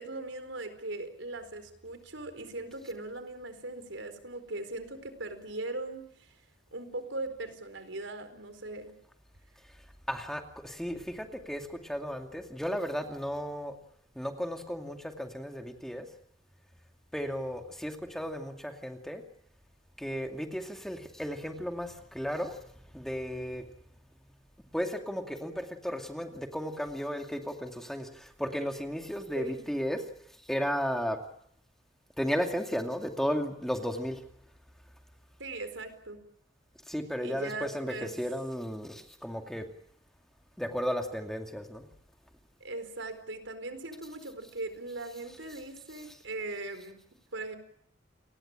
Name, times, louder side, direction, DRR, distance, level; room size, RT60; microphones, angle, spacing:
voice 1, 0.0-6.3 6.7-8.9 29.3-29.6 35.4-36.2 37.2-38.1 42.6-47.0 47.3-47.6, right 2 dB, 80° right, 10 dB, 4.4 m, -39 dB
voice 2, 10.1-13.7 14.1-16.1 17.1-19.2 20.0-23.6 24.7-30.0 30.5-31.2 32.2-34.2 36.9-39.7 40.6-41.9 45.9-46.2, equal, ahead, 4 dB, 2.4 m, -34 dB
29.5 x 20.5 x 9.0 m, 0.71 s
head